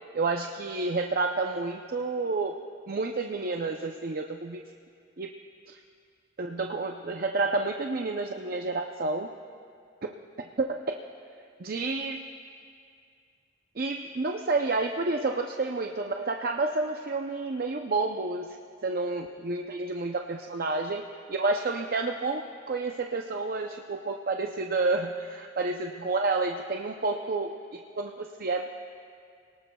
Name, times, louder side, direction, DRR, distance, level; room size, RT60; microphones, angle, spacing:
voice 1, 0.1-2.6 2.9-4.6 5.2-5.3 5.7-5.8 6.4-9.3 10.0-10.1 10.6-10.9 11.6-12.3 13.8-18.6 18.8-21.0 21.3-28.6, right 3 dB, 50° right, 3 dB, 0.6 m, -30 dB
27.0 x 19.0 x 2.3 m, 2.2 s
head